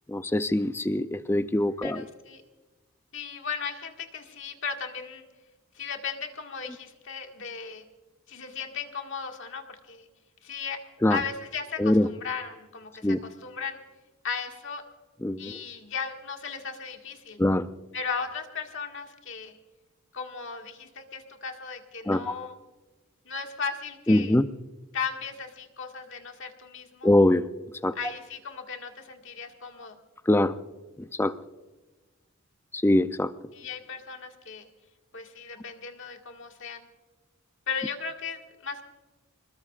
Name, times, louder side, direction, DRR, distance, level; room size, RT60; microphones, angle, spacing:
voice 1, 0.1-2.1 11.0-11.2 11.8-12.1 13.0-13.2 15.2-15.6 17.4-17.7 22.1-22.3 24.1-24.5 27.0-27.5 27.8-27.9 30.3-30.5 31.0-31.3 32.7-33.3, left 1 dB, 10° left, 12 dB, 0.5 m, -23 dB
voice 2, 1.8-2.4 3.1-5.3 5.7-7.8 8.3-10.1 10.4-10.8 11.1-13.8 14.2-14.8 15.4-17.4 17.9-19.5 20.1-22.6 23.3-24.4 24.9-27.1 27.9-30.0 33.5-34.7 35.1-36.9 37.7-38.9, left 5 dB, 60° left, 3 dB, 1.8 m, -36 dB
26.0 x 21.0 x 2.5 m, 1.2 s
head